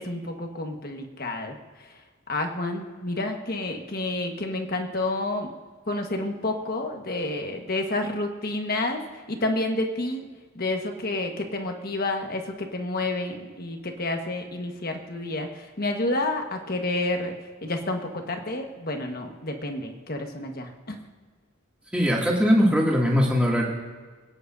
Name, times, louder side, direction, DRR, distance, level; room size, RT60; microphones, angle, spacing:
voice 1, 0.0-1.6 2.3-5.5 5.9-9.0 9.3-10.3 10.5-17.3 17.6-21.0, left 2 dB, 45° left, 4 dB, 1.4 m, -29 dB
voice 2, 21.9-23.6, equal, 5° right, -4 dB, 2.3 m, -20 dB
25.0 x 9.9 x 2.7 m, 1.5 s
head